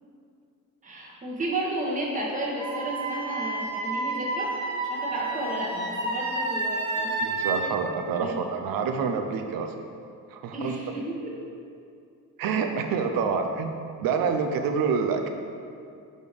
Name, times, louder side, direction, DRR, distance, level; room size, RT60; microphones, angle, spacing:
voice 1, 0.8-4.5 4.8-7.1 8.2-8.4 10.5-11.3, right 1 dB, 25° right, -4 dB, 1.2 m, -32 dB
Wind instrument woodwind instrument, 2.6-7.6, right 2 dB, 50° right, 1.2 m, -30 dB
voice 2, 7.2-9.7 10.3-10.8 12.4-15.3, right 5 dB, 80° right, 5 dB, 0.7 m, -27 dB
5.3 x 4.3 x 4.8 m, 2.4 s
cardioid pair, 135°, 34 cm